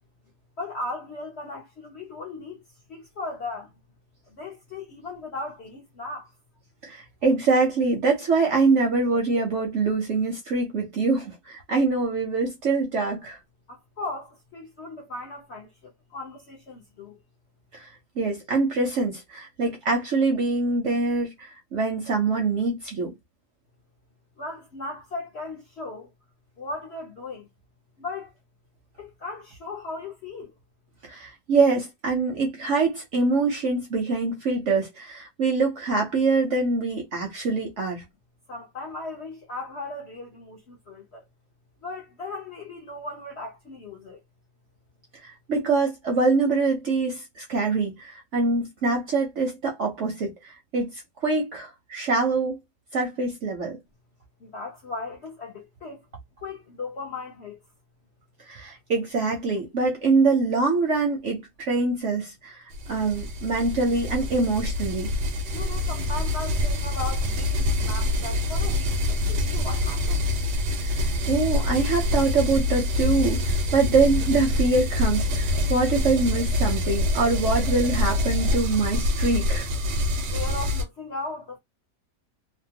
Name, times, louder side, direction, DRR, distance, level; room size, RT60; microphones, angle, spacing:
voice 1, 0.6-2.6 2.9-3.7 4.3-6.3 13.7-17.2 24.4-26.1 26.6-27.5 28.0-28.3 29.0-30.5 38.5-41.2 41.8-44.2 54.4-56.0 56.4-57.6 65.5-70.3 80.3-81.6, left 3 dB, 60° left, 0.7 m, -37 dB
voice 2, 6.8-13.4 17.7-17.9 18.2-23.1 31.0-38.0 45.2-52.6 52.9-53.8 58.5-62.6 62.9-65.1 70.8-79.7, right 3 dB, 60° right, 0.8 m, -24 dB
sound 1, 62.7-80.8, left 2 dB, 85° right, 1.2 m, -26 dB
2.8 x 2.1 x 2.7 m
omnidirectional pair, 1.8 m